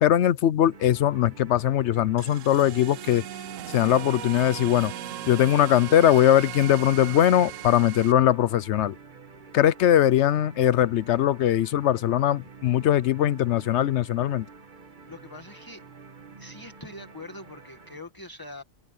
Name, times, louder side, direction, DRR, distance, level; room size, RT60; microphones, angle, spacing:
voice 1, 0.0-3.2 3.7-4.9 5.3-8.9 9.5-14.4, left 11 dB, 65° left, 0.8 m, -21 dB
sound 1, 0.7-18.0, right 4 dB, 40° right, 1.5 m, -48 dB
sound 2, 2.2-8.1, right 11 dB, 85° right, 1.1 m, -38 dB
voice 2, 15.1-15.8 16.4-18.6, left 2 dB, 15° left, 1.8 m, -43 dB
omnidirectional pair, 1.3 m